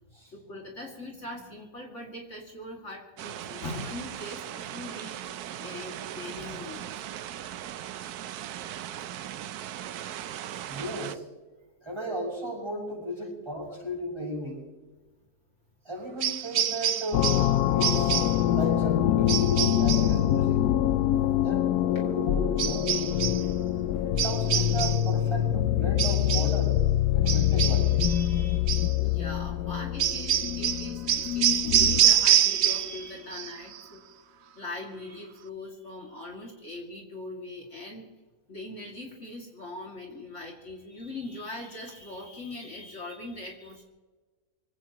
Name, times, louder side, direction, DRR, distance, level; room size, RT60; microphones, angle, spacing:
voice 1, 0.3-7.1 10.1-10.4 10.7-10.8 17.8-17.9 20.8-21.5 23.4-23.6 28.1-34.0 34.6-38.1 38.5-43.8, left 2 dB, 50° left, -1 dB, 2.7 m, -41 dB
sound 1, 3.2-11.2, right 11 dB, 80° right, 1.2 m, -38 dB
voice 2, 10.6-11.2 11.8-14.6 15.8-17.4 17.7-20.7 21.4-23.0 24.0-26.8 27.1-27.9, equal, 15° right, -4 dB, 6.5 m, -35 dB
sound 2, 16.2-17.5 17.8-18.4 19.3-20.2 22.6-23.5 24.2-25.1 26.0-26.6 27.3-28.3 28.7-28.9 30.0-33.0 33.3-33.8, right 10 dB, 60° right, 0.7 m, -26 dB
sound 3, 17.1-32.2, left 12 dB, 85° left, 1.2 m, -25 dB
25.0 x 17.5 x 3.0 m, 1.3 s
omnidirectional pair, 1.6 m